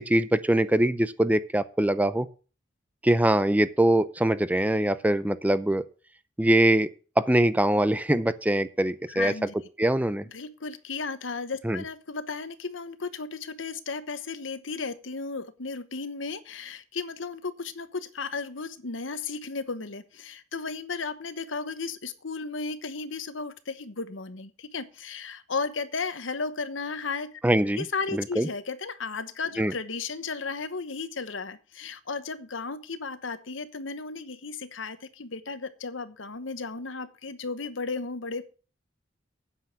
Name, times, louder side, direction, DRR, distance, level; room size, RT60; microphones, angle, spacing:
voice 1, 0.0-2.3 3.0-5.8 6.4-6.9 7.2-9.3 9.8-10.3 11.6-11.8 27.4-27.8 28.1-28.5 29.6-29.7, right 1 dB, 10° right, 14 dB, 0.5 m, -23 dB
voice 2, 9.1-9.5 10.3-27.4 27.8-38.4, left 4 dB, 75° left, 13 dB, 1.0 m, -34 dB
9.6 x 7.0 x 7.1 m, 0.37 s
head